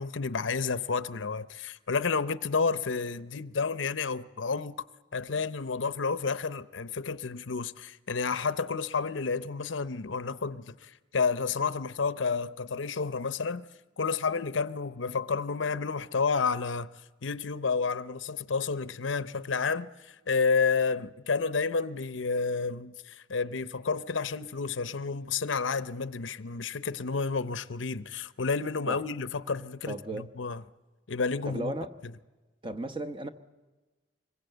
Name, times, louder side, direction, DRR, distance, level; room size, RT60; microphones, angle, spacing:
voice 1, 0.0-4.8 5.1-13.6 14.0-16.9 17.2-30.6 31.1-31.7, left 5 dB, 85° left, 0.8 m, -30 dB
voice 2, 29.9-30.3 31.5-31.9 32.6-33.3, right 1 dB, 25° right, 1.0 m, -35 dB
25.5 x 22.0 x 8.0 m
head